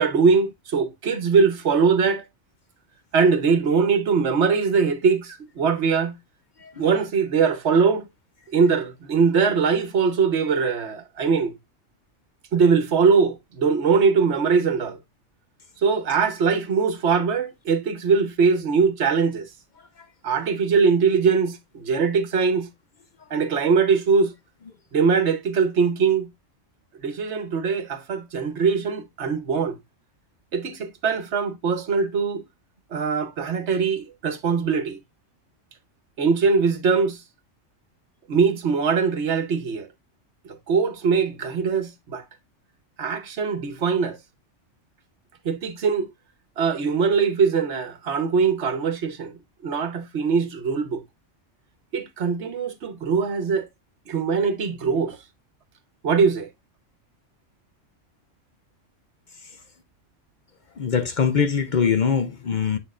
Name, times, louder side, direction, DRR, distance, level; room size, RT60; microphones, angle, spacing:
voice 1, 0.0-2.2 3.1-6.1 6.8-8.1 8.5-11.5 12.5-15.0 15.8-19.5 20.2-22.7 23.3-24.3 24.9-26.3 27.0-29.8 30.5-32.4 32.9-35.0 36.2-37.2 38.3-39.9 40.7-42.2 43.0-44.2 45.4-46.1 46.6-49.3 49.6-51.0 51.9-53.7 54.1-55.2 56.0-56.5, right 5 dB, 70° right, 1.2 m, -21 dB
voice 2, 60.8-62.8, left 6 dB, 50° left, 0.6 m, -22 dB
7.4 x 6.2 x 2.4 m
omnidirectional pair, 1.2 m